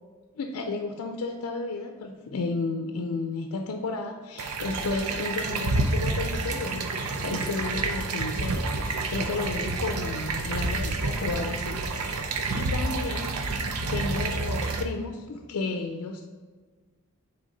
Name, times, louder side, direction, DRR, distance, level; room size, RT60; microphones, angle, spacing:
voice 1, 0.4-12.2 12.5-13.3 13.9-16.3, left 3 dB, 80° left, 4 dB, 0.5 m, -32 dB
sound 1, 4.4-14.8, right 3 dB, 80° right, 0.6 m, -29 dB
6.3 x 4.4 x 3.9 m, 1.5 s
head